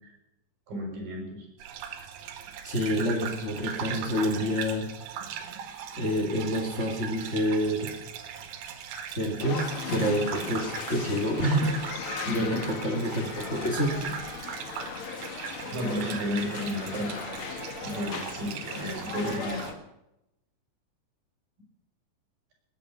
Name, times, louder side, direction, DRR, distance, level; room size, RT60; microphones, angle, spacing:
voice 1, 0.7-1.5 12.2-12.6 15.7-17.6 17.8-19.7, equal, 50° right, 1 dB, 7.0 m, -33 dB
sound 1, 1.6-19.7, right 8 dB, 85° right, 4.0 m, -39 dB
voice 2, 2.6-4.9 6.0-7.9 9.1-11.9 12.2-14.2, equal, 30° left, 2 dB, 1.2 m, -28 dB
sound 2, 9.4-19.7, left 5 dB, 75° left, 1.2 m, -37 dB
19.5 x 10.0 x 6.8 m, 0.86 s
omnidirectional pair, 5.3 m